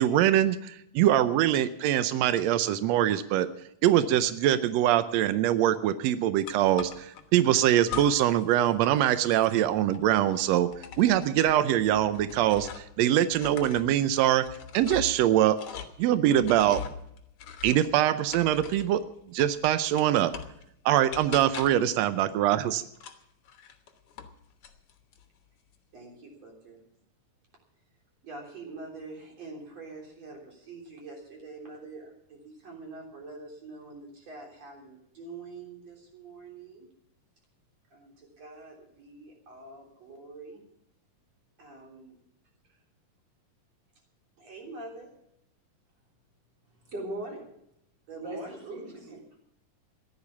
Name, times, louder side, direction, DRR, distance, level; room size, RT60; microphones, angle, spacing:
voice 1, 0.0-3.5 3.8-14.5 14.7-15.6 16.0-16.8 17.6-19.0 19.3-20.3 20.8-22.8, right 12 dB, 80° right, 12 dB, 1.5 m, -23 dB
sound 1, 6.5-7.2 7.8-8.4 8.7-13.0 13.3-19.0 19.4-20.6 21.1-21.9 22.9-24.3 24.6-25.2, left 8 dB, 55° left, 1.8 m, -42 dB
voice 2, 25.9-26.8 28.2-36.9 37.9-40.6 41.6-42.2 44.4-45.1 48.1-49.2, right 3 dB, 50° right, 0 dB, 4.4 m, -45 dB
voice 3, 46.8-47.4 48.1-49.4, right 1 dB, 30° right, -1 dB, 4.5 m, -39 dB
15.0 x 11.0 x 7.1 m, 0.75 s
omnidirectional pair, 3.7 m